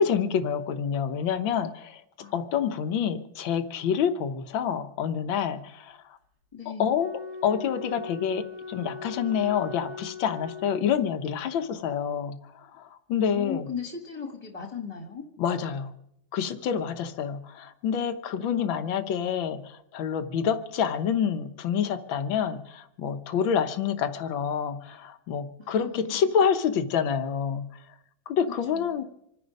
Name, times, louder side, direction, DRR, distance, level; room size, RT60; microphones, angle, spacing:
voice 1, 0.0-2.0 2.3-6.0 6.8-7.1 7.4-13.7 15.4-15.9 16.3-27.7 28.3-29.0, left 7 dB, 85° left, 9 dB, 1.7 m, -27 dB
voice 2, 6.5-6.9 13.3-15.3 18.4-18.9 25.6-26.2 28.7-29.0, left 6 dB, 20° left, 3 dB, 1.9 m, -37 dB
Wind instrument woodwind instrument, 6.9-11.4, left 4 dB, 65° right, 3.1 m, -40 dB
26.0 x 10.5 x 5.3 m, 0.80 s
omnidirectional pair, 2.1 m